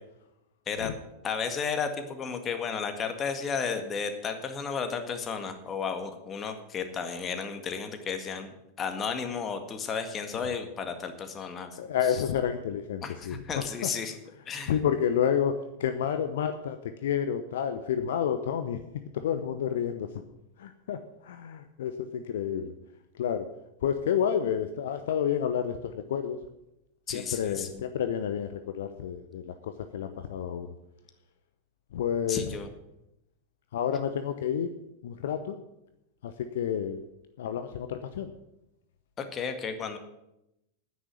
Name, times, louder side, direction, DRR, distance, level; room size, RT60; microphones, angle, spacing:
voice 1, 1.2-11.7 12.1-12.2 13.0-14.2 14.5-14.7 27.1-27.7 32.3-32.7 39.2-40.0, left 6 dB, 25° left, 7 dB, 1.8 m, -33 dB
voice 2, 11.8-13.9 14.7-18.8 19.1-20.1 20.6-22.7 23.1-23.5 23.8-26.4 27.1-30.7 31.9-32.4 33.7-34.7 35.0-35.6 36.2-37.0 37.4-38.3, left 8 dB, 60° left, 9 dB, 0.8 m, -30 dB
9.9 x 9.5 x 8.4 m, 0.88 s
figure-of-eight pair, 90°, 0 cm